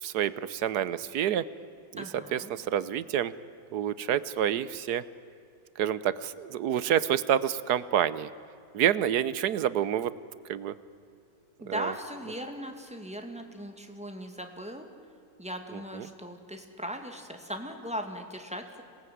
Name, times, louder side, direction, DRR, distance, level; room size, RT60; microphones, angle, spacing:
voice 1, 0.0-1.4 1.9-2.0 2.3-3.3 3.7-5.0 5.8-8.3 8.7-10.1 10.5-10.7 11.7-11.9, right 10 dB, 75° right, 16 dB, 1.3 m, -28 dB
voice 2, 2.0-2.5 11.6-14.9 15.4-18.8, equal, 5° right, 4 dB, 2.2 m, -38 dB
26.5 x 19.0 x 9.4 m, 2.6 s
omnidirectional pair, 1.8 m